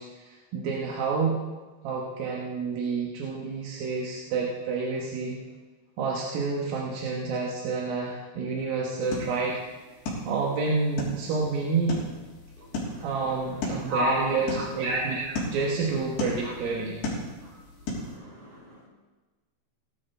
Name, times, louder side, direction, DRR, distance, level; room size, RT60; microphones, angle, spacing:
voice 1, 0.0-1.4 1.8-5.4 6.0-9.6 10.3-12.0 13.0-15.2 15.5-17.0, right 4 dB, 65° right, -3 dB, 2.5 m, -29 dB
sound 1, 9.0-18.2, left 2 dB, 55° left, 5.1 m, -36 dB
voice 2, 12.6-15.2 16.4-16.5 17.4-17.6 17.9-18.9, equal, 50° right, -5 dB, 6.2 m, -33 dB
18.5 x 12.5 x 3.4 m, 1.3 s
omnidirectional pair, 5.6 m